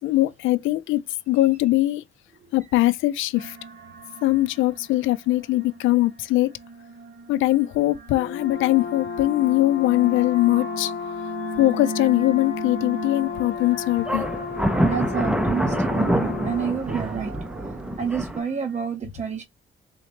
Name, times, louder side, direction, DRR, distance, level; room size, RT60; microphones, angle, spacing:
voice 1, 0.0-2.0 2.5-3.6 4.2-6.5 7.3-10.9 11.6-14.2, left 16 dB, 80° left, 0.4 m, -21 dB
sound 1, 3.3-18.9, right 2 dB, 60° right, 2.0 m, -38 dB
Brass instrument, 8.1-16.9, left 6 dB, 55° left, 0.8 m, -33 dB
sound 2, 13.2-13.6 14.0-18.4, right 1 dB, 5° right, 0.5 m, -26 dB
voice 2, 14.8-17.4 18.0-19.4, right 6 dB, 35° right, 0.8 m, -28 dB
3.8 x 3.1 x 3.2 m
cardioid pair, 90°, 20 cm